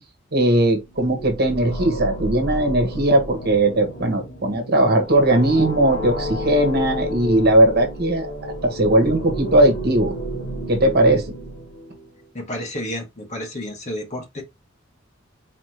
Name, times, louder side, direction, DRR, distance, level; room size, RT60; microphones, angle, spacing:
voice 1, 0.3-8.3 8.6-10.1 10.7-11.3, right 1 dB, 55° right, 1.4 m, -18 dB
sound 1, 0.9-12.1, equal, 90° left, 1.9 m, -31 dB
voice 2, 12.3-14.4, left 1 dB, 35° left, 1.5 m, -31 dB
4.2 x 3.6 x 2.9 m
head